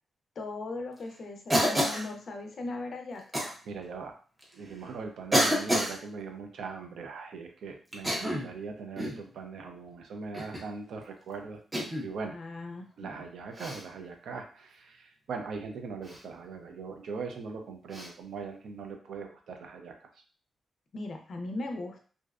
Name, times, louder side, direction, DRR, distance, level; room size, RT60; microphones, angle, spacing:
voice 1, 0.4-3.4 12.3-13.1 20.9-22.0, left 2 dB, 45° left, 4 dB, 0.4 m, -38 dB
Cough, 1.5-2.1 3.3-3.5 4.4-4.5 5.3-6.0 7.9-8.5 9.0-9.2 10.3-10.7 11.7-12.1 13.5-13.8 16.0-16.2 17.9-18.1, equal, 10° right, 0.5 m, -28 dB
voice 2, 3.7-4.1 4.5-11.6 12.0-12.4 13.0-20.1, right 4 dB, 70° right, 4 dB, 0.4 m, -40 dB
2.5 x 2.0 x 2.3 m, 0.41 s
wide cardioid pair, 170°, 0 cm